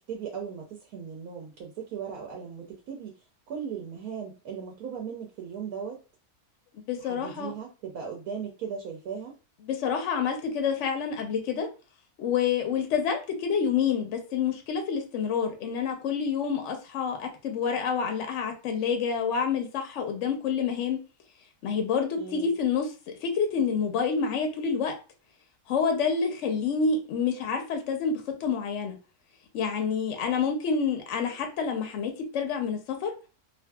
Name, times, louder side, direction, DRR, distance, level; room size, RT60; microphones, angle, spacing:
voice 1, 0.1-3.1 3.5-6.0 7.0-9.4 22.2-22.5, right 7 dB, 80° right, 1 dB, 1.1 m, -37 dB
voice 2, 6.9-7.5 9.6-11.7 12.2-21.0 21.6-24.9 25.7-29.0 29.5-33.1, left 6 dB, 65° left, 4 dB, 0.8 m, -28 dB
2.6 x 2.6 x 2.2 m, 0.33 s
omnidirectional pair, 1.6 m